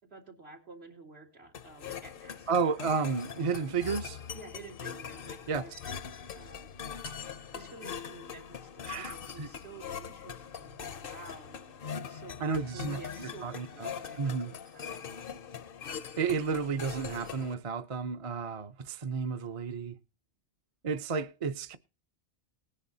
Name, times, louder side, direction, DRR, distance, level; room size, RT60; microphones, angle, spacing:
voice 1, 0.0-2.7 4.3-5.7 6.3-6.7 7.5-11.6 11.9-15.2, right 3 dB, 80° right, 3.2 m, -50 dB
sound 1, 1.5-17.5, left 7 dB, 65° left, 0.9 m, -42 dB
voice 2, 2.5-4.2 5.5-5.6 8.9-9.5 12.4-13.9 14.2-14.6 16.2-20.0 20.8-21.8, right 5 dB, 35° right, 0.7 m, -32 dB
19.0 x 9.9 x 2.7 m
omnidirectional pair, 1.0 m